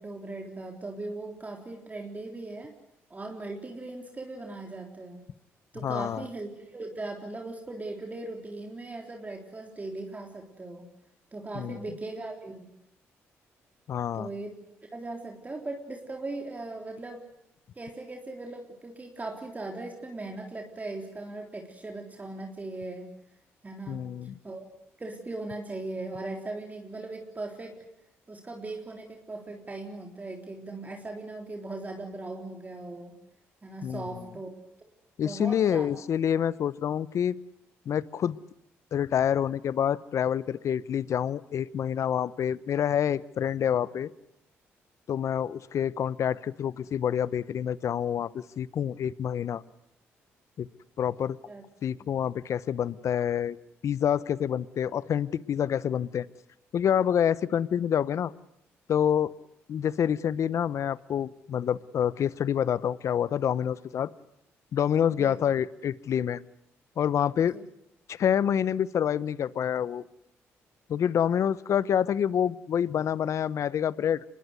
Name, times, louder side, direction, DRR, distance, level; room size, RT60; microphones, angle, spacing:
voice 1, 0.0-2.8 3.1-5.2 5.7-10.9 11.3-12.7 14.1-14.5 14.9-17.3 17.8-23.1 23.6-24.1 24.4-24.7 25.0-27.8 28.3-33.1 33.6-34.5 34.8-34.9 35.2-35.9 51.5-51.6 65.1-65.4 67.4-67.6, right 2 dB, 30° right, 2 dB, 3.6 m, -39 dB
voice 2, 5.8-6.2 11.5-11.8 13.9-14.3 23.9-24.4 33.8-34.0 35.2-37.4 37.9-38.4 38.9-44.1 45.1-49.6 50.6-50.7 51.0-51.4 51.8-53.6 53.8-56.3 56.7-58.3 58.9-59.3 59.7-64.1 64.7-66.4 67.0-67.6 68.1-70.0 70.9-74.2, left 9 dB, 60° left, 19 dB, 0.8 m, -27 dB
25.0 x 21.0 x 8.0 m, 0.78 s
supercardioid pair, 60°, 6 cm